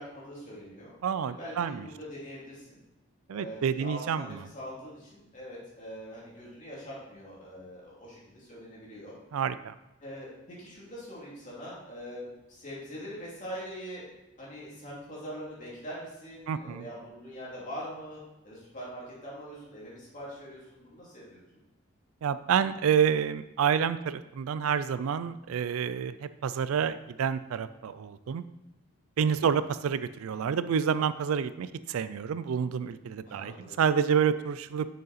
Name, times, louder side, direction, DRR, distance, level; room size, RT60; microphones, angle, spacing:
voice 1, 0.0-0.9 1.2-2.8 3.3-9.1 10.0-14.0 14.4-18.2 18.4-21.4 29.4-29.6 33.3-33.8, equal, 35° left, -6 dB, 2.6 m, -43 dB
voice 2, 1.0-1.9 3.3-4.4 9.3-9.7 16.5-16.9 22.2-28.4 29.2-34.9, right 7 dB, 80° right, 14 dB, 0.3 m, -28 dB
6.6 x 6.4 x 4.1 m, 0.96 s
head